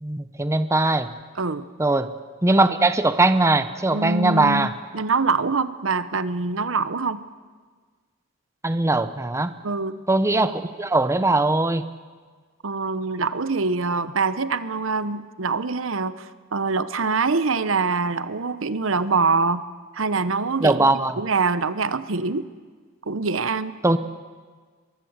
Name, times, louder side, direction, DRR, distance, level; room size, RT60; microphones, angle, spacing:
voice 1, 0.0-1.1 1.8-2.1 2.4-4.7 8.6-9.5 10.1-11.9 20.6-21.2 23.8-24.0, right 2 dB, 15° right, 11 dB, 0.8 m, -20 dB
voice 2, 1.3-1.6 3.9-4.7 4.9-7.2 9.6-10.0 12.6-19.6 19.9-22.5 23.1-23.8, right 4 dB, 70° right, 14 dB, 0.9 m, -24 dB
23.0 x 22.5 x 8.1 m, 1.5 s
head